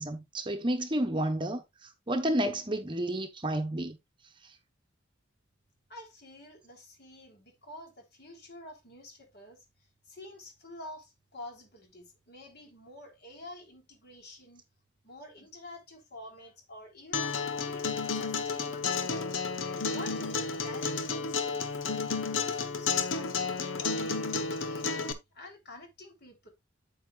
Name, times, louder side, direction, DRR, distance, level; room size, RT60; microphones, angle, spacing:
voice 1, 0.0-4.0, right 1 dB, 25° right, 1.0 m, -31 dB
voice 2, 5.9-14.6 15.0-19.4 19.9-21.7 22.2-26.5, left 1 dB, 55° left, 3.4 m, -49 dB
Acoustic guitar, 17.1-25.1, left 5 dB, 75° left, 1.1 m, -32 dB
8.6 x 8.3 x 2.4 m
head